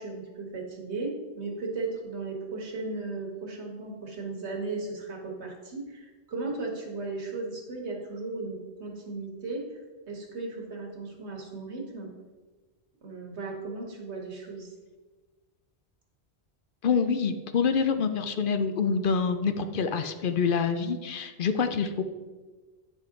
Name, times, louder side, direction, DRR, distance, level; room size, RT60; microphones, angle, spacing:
voice 1, 0.0-9.8 10.1-12.1 13.0-14.7, right 3 dB, 80° right, 0 dB, 1.7 m, -36 dB
voice 2, 16.8-22.0, left 5 dB, 60° left, 9 dB, 0.7 m, -26 dB
9.4 x 5.3 x 3.7 m, 1.3 s
omnidirectional pair, 1.1 m